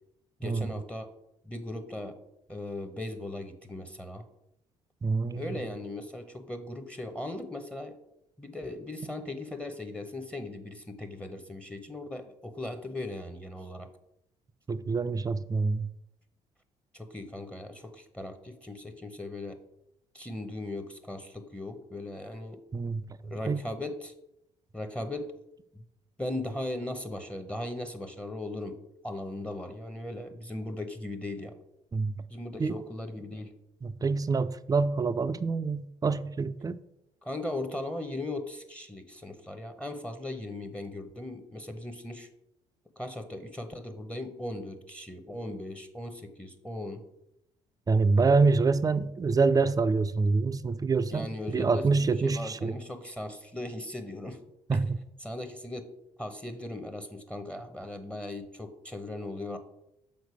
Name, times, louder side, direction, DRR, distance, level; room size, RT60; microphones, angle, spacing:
voice 1, 0.4-1.1 1.4-2.2 2.5-4.2 5.3-8.0 8.4-13.9 16.9-19.6 20.1-22.6 23.2-24.1 24.7-25.3 25.7-25.8 26.2-28.8 29.0-31.5 32.3-33.5 37.2-42.3 43.0-47.0 51.1-54.4 54.7-54.8 55.2-55.9 56.2-59.6, left 1 dB, 5° left, 0.8 m, -38 dB
voice 2, 5.0-5.6 14.7-15.9 22.7-23.0 23.5-23.7 31.9-32.2 32.6-32.8 33.8-36.8 47.9-52.7 54.7-55.0, right 4 dB, 25° right, 0.4 m, -26 dB
6.6 x 3.9 x 4.8 m
hypercardioid pair, 60°, 16 cm